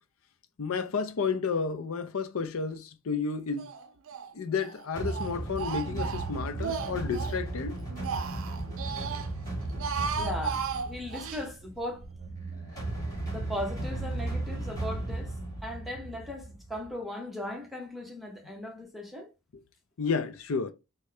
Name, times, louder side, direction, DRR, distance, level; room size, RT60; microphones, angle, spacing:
voice 1, 0.6-3.7 4.4-7.8 20.0-20.7, left 5 dB, 70° left, 0.5 m, -31 dB
Speech, 3.6-4.3 4.6-7.4 7.8-9.3 9.7-11.4, right 6 dB, 65° right, 0.5 m, -35 dB
sound 1, 5.0-16.9, right 2 dB, 15° left, 2.2 m, -36 dB
voice 2, 10.2-10.6 10.9-12.0 13.3-15.3 15.6-19.3, left 1 dB, ahead, 0.8 m, -37 dB
6.3 x 2.2 x 3.3 m
head